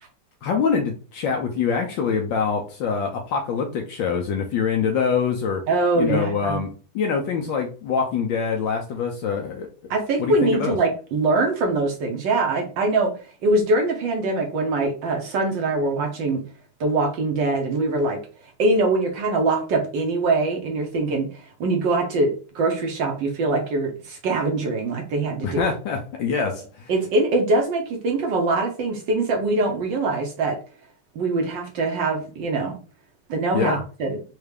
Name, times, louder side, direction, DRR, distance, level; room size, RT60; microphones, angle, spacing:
voice 1, 0.4-5.6 6.0-9.7 10.2-10.8 25.4-26.9 33.5-33.8, left 6 dB, 75° left, 2 dB, 1.1 m, -24 dB
voice 2, 5.7-6.6 9.9-13.1 13.4-16.4 16.8-18.2 18.6-22.3 22.5-25.7 26.9-30.6 31.1-32.8 33.3-34.2, right 2 dB, 65° right, 3 dB, 1.2 m, -23 dB
4.4 x 2.3 x 3.3 m, 0.38 s
omnidirectional pair, 2.4 m